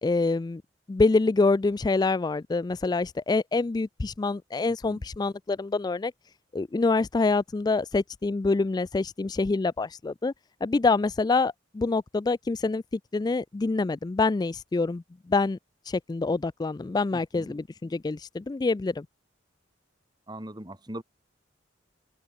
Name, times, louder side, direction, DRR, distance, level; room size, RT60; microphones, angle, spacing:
voice 1, 0.0-0.6 0.9-6.1 6.5-10.3 10.6-12.8 13.1-15.0 15.3-15.6 15.9-19.1, left 3 dB, 20° left, 0.3 m, -26 dB
voice 2, 17.1-17.5 20.3-21.0, right 1 dB, 25° right, 3.9 m, -40 dB
head